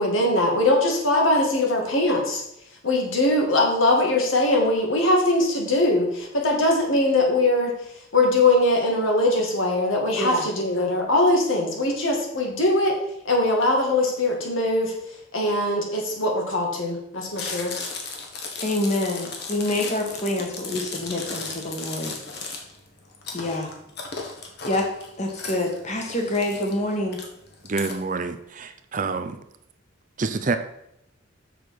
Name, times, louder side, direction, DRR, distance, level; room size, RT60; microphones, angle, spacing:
voice 1, 0.0-2.4 2.8-7.7 8.1-13.0 13.3-14.9 15.3-17.7, left 2 dB, 75° left, 1 dB, 2.3 m, -21 dB
Chewing mastication, 17.3-27.9, left 4 dB, 50° left, 1.6 m, -35 dB
voice 2, 18.6-22.2 23.3-23.7 24.7-24.9 25.2-27.2, left 1 dB, 35° left, 2 dB, 1.7 m, -26 dB
voice 3, 27.6-29.4 30.2-30.6, right 4 dB, 40° right, 9 dB, 0.6 m, -27 dB
7.0 x 6.6 x 6.0 m, 0.79 s
head